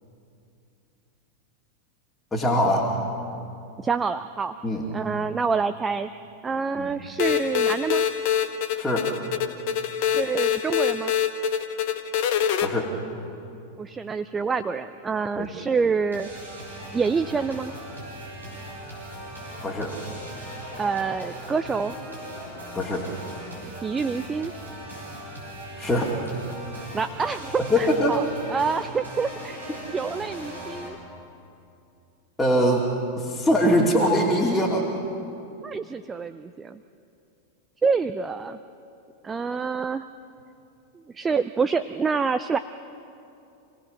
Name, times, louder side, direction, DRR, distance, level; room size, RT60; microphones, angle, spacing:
voice 1, 2.3-2.9 4.6-4.9 6.8-6.9 8.8-9.1 12.6-12.9 15.4-15.5 19.6-20.0 22.7-23.1 25.8-26.2 27.6-28.2 32.4-32.9 33.2-34.9, equal, 10° left, -4 dB, 2.6 m, -22 dB
voice 2, 3.8-4.6 4.9-6.1 6.4-8.0 10.1-11.1 13.8-16.3 16.9-17.7 20.8-21.9 23.8-24.5 26.9-28.2 28.5-29.6 29.9-31.0 35.6-36.8 37.8-38.6 39.2-40.0 41.1-42.6, right 5 dB, 15° right, 12 dB, 0.5 m, -27 dB
sound 1, 7.2-12.7, left 8 dB, 50° left, 1.3 m, -25 dB
sound 2, 16.1-30.9, right 1 dB, 80° right, 6.7 m, -39 dB
27.5 x 18.0 x 6.6 m, 2.7 s
figure-of-eight pair, 90°, 0 cm